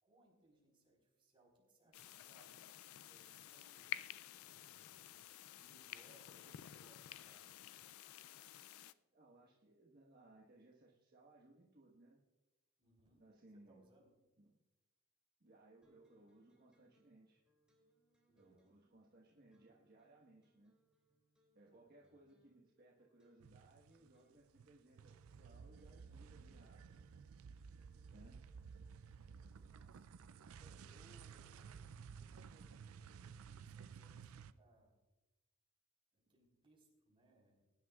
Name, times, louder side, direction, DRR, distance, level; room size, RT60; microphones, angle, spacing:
voice 1, 0.0-2.6 3.1-5.2 5.5-7.9 12.8-14.1 18.3-18.7 21.7-22.2 28.5-29.0 29.6-30.1 30.6-35.0 36.1-37.6, right 2 dB, 25° right, -2 dB, 4.1 m, -71 dB
sound 1, 1.9-8.9, left 12 dB, 80° left, 0.4 m, -51 dB
voice 2, 9.1-12.2 13.2-13.8 14.4-14.5 15.4-17.4 18.3-20.8 21.5-27.0 28.1-28.4, right 2 dB, 50° right, -3 dB, 1.4 m, -65 dB
sound 2, 15.8-30.6, right 2 dB, 5° right, 2.5 m, -79 dB
sound 3, 23.4-24.2 24.4-34.5, right 6 dB, 85° right, 0.4 m, -55 dB
21.5 x 10.5 x 2.4 m, 1.1 s
head